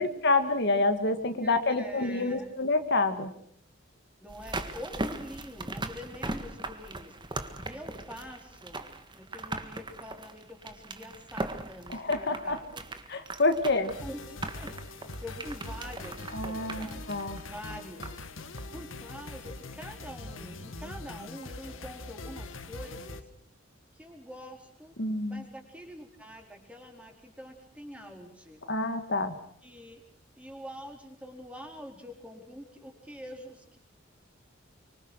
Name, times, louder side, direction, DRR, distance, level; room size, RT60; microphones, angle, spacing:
voice 1, 0.0-3.3 11.9-12.6 13.1-13.9 16.3-17.4 25.0-25.4 28.7-29.3, left 2 dB, 60° left, 8 dB, 1.8 m, -27 dB
voice 2, 1.3-2.5 4.2-8.8 9.1-12.8 14.0-14.7 15.2-18.1 18.4-23.2 23.9-25.0 25.3-28.6 29.6-30.0 30.4-33.8, equal, 5° right, 3 dB, 4.3 m, -45 dB
sound 1, 4.3-18.3 18.6-18.7, right 2 dB, 25° right, 1.8 m, -39 dB
sound 2, 13.9-23.2, left 2 dB, 90° left, 1.9 m, -42 dB
25.0 x 24.5 x 6.3 m, 0.63 s
head